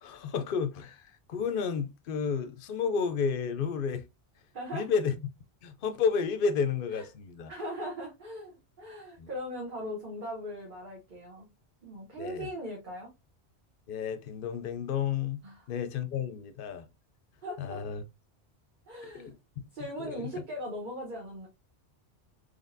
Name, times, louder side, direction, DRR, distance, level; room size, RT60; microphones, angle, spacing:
voice 1, 0.0-4.0 4.7-5.1 5.6-7.5 9.2-9.3 12.2-12.5 13.9-15.4 15.7-16.9 17.6-18.0 19.1-19.7 20.0-20.3, left 6 dB, 60° left, 0.7 m, -31 dB
voice 2, 4.5-4.9 6.9-7.1 7.5-11.5 11.8-13.1 15.4-15.7 17.4-17.8 18.9-19.3 19.7-21.5, equal, 50° right, 1.2 m, -39 dB
4.2 x 3.2 x 2.5 m
omnidirectional pair, 1.1 m